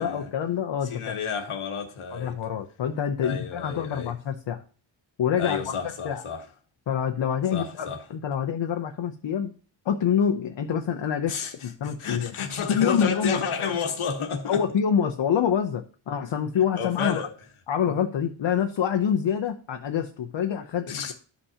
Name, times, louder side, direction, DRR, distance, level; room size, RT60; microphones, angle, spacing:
voice 1, 0.0-1.1 2.1-4.6 5.2-5.6 6.0-6.2 6.9-9.5 9.8-11.3 11.6-12.3 12.7-13.7 14.5-17.2 17.7-21.1, left 8 dB, 65° left, 0.7 m, -26 dB
voice 2, 0.8-2.4 3.2-4.1 5.4-6.5 7.5-8.0 11.3-14.6 16.8-17.3 20.9-21.1, left 6 dB, 80° left, 1.3 m, -31 dB
12.5 x 5.6 x 2.8 m
wide cardioid pair, 155°, 49 cm